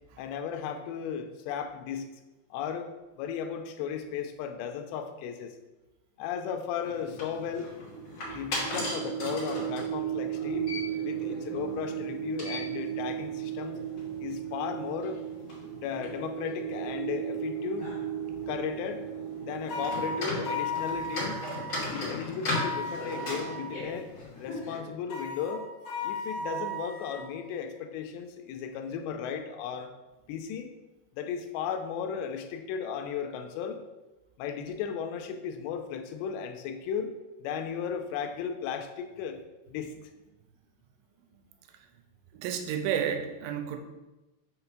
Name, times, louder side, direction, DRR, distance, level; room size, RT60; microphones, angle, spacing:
voice 1, 0.2-2.0 2.5-2.9 3.2-5.6 6.2-7.7 8.3-10.7 11.0-13.8 14.2-15.2 15.7-17.9 18.5-19.0 19.4-21.4 21.9-24.1 24.4-25.7 26.0-29.9 30.3-30.7 31.1-33.8 34.4-39.4 39.7-39.9, left 7 dB, 90° left, 5 dB, 2.9 m, -35 dB
sound 1, 6.8-24.8, left 2 dB, 40° left, 3.2 m, -39 dB
sound 2, 7.5-22.5, right 11 dB, 65° right, 3.0 m, -36 dB
sound 3, 19.7-21.8 22.5-23.8 25.1-27.3, left 2 dB, 55° left, 2.1 m, -35 dB
voice 2, 42.3-43.8, right 8 dB, 85° right, 6 dB, 2.9 m, -31 dB
6.8 x 3.9 x 5.9 m, 1.1 s
omnidirectional pair, 5.0 m